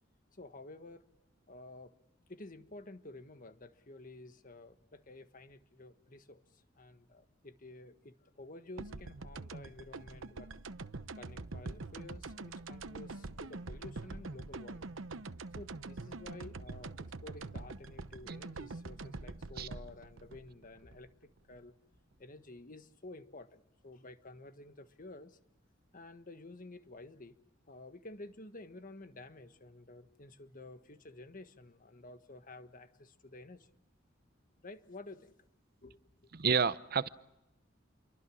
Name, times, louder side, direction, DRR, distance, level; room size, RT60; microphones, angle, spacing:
voice 1, 0.3-1.0 1.5-1.9 2.3-10.5 11.2-14.9 15.5-21.7 22.2-25.4 25.9-27.4 27.7-33.7 34.6-35.3 35.8-36.0, left 2 dB, 45° left, 1.6 m, -51 dB
sound 1, 8.8-21.6, right 3 dB, 90° right, 1.0 m, -45 dB
voice 2, 36.3-37.1, right 6 dB, 50° right, 0.8 m, -30 dB
28.5 x 23.5 x 6.3 m
head